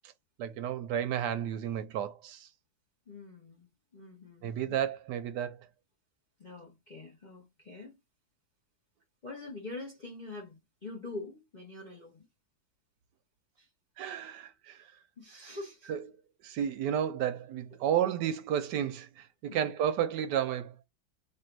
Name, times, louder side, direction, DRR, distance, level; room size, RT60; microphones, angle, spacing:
voice 1, 0.4-2.5 4.4-5.6 14.0-14.9 15.9-16.0 16.4-20.8, right 9 dB, 75° right, 1.1 m, -32 dB
voice 2, 3.1-4.8 6.4-8.0 9.2-12.3 13.6-13.7 15.2-15.9 19.5-19.7, left 2 dB, 40° left, 0.6 m, -45 dB
3.1 x 2.5 x 4.4 m
omnidirectional pair, 2.0 m